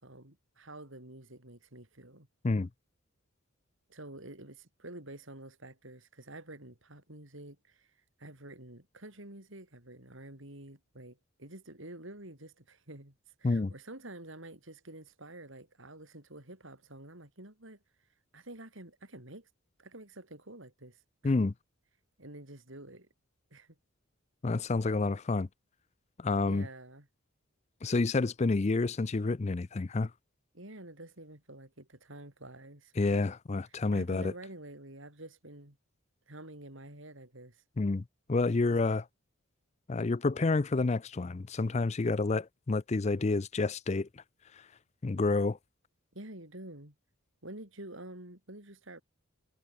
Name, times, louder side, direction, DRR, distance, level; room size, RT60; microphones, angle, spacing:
voice 1, 0.0-2.3 3.9-7.9 8.2-17.8 18.3-19.5 19.8-21.3 22.2-23.1 23.5-23.8 26.5-27.1 30.5-33.3 33.9-35.8 36.3-37.6 38.7-39.0 46.1-46.9 47.4-49.0, right 1 dB, 65° right, 4.8 m, -48 dB
voice 2, 24.4-25.5 26.2-26.7 27.8-30.1 33.0-34.3 37.8-39.0 39.9-44.1 45.0-45.6, left 3 dB, 30° left, 0.4 m, -29 dB
head